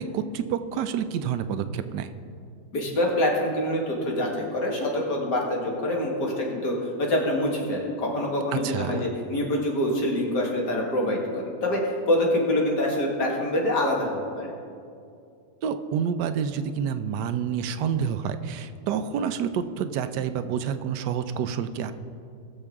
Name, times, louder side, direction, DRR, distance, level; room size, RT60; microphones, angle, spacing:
voice 1, 0.0-2.1 8.5-9.1 15.6-21.9, right 7 dB, 85° right, 10 dB, 1.2 m, -28 dB
voice 2, 2.7-14.1 14.4-14.5, left 1 dB, 80° left, -2 dB, 2.5 m, -25 dB
19.5 x 6.7 x 3.6 m, 2.4 s
omnidirectional pair, 1.8 m